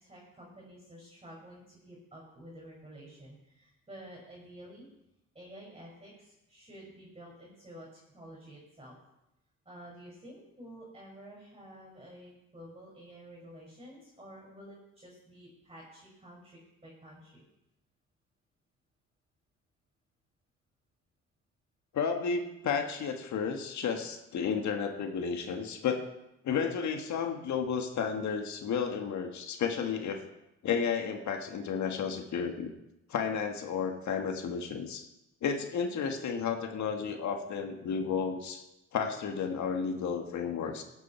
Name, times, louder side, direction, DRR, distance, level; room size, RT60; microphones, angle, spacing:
voice 1, 0.0-4.9 5.3-9.0 9.6-17.4, right 1 dB, 20° right, -3 dB, 5.8 m, -50 dB
voice 2, 21.9-26.0 26.4-30.2 30.6-32.7 33.1-35.0 35.4-38.6 38.9-40.8, left 6 dB, 70° left, 4 dB, 1.6 m, -32 dB
17.0 x 8.6 x 4.4 m, 0.88 s
cardioid pair, 90°, 30 cm